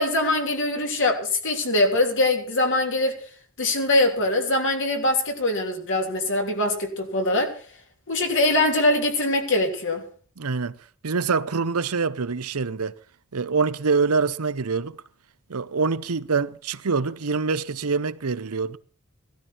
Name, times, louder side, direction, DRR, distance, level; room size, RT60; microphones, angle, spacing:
voice 1, 0.0-3.1 3.6-7.5 8.1-10.0, left 2 dB, 60° left, 3.1 m, -22 dB
voice 2, 10.4-10.8 11.0-13.0 13.3-15.0 15.5-18.8, right 4 dB, 85° right, 0.8 m, -25 dB
17.5 x 13.0 x 4.5 m
head